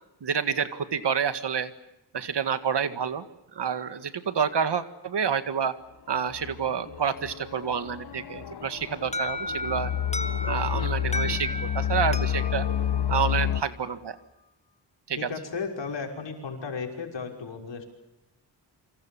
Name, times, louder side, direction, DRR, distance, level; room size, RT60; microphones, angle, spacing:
voice 1, 0.2-1.7 2.1-3.2 3.6-5.7 6.1-9.9 10.4-12.7 13.1-14.2 15.1-15.2, right 7 dB, 70° right, 11 dB, 2.0 m, -28 dB
sound 1, 6.3-13.6, left 9 dB, 65° left, 1.4 m, -30 dB
Alarm, 9.1-13.9, left 1 dB, 15° left, 1.8 m, -35 dB
voice 2, 15.2-17.9, left 5 dB, 80° left, 2 dB, 6.0 m, -34 dB
28.5 x 25.5 x 7.2 m, 0.89 s
wide cardioid pair, 110°, 43 cm